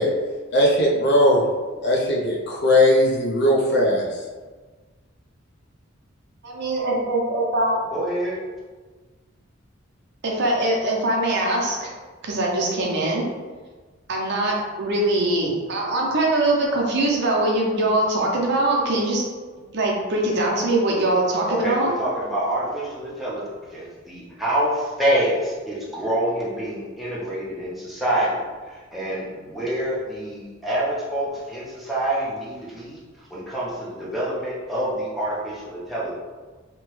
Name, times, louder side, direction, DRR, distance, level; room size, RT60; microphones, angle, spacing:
voice 1, 0.5-1.4 1.8-4.0, left 1 dB, 55° left, -2 dB, 0.5 m, -18 dB
voice 2, 6.4-7.8 10.2-11.9 12.2-13.2 14.1-19.2 19.7-21.9, right 1 dB, 55° right, -2 dB, 0.5 m, -22 dB
voice 3, 7.9-8.4 21.5-33.0 33.3-36.1, right 1 dB, ahead, -8 dB, 0.6 m, -26 dB
2.9 x 2.2 x 3.0 m, 1.4 s
head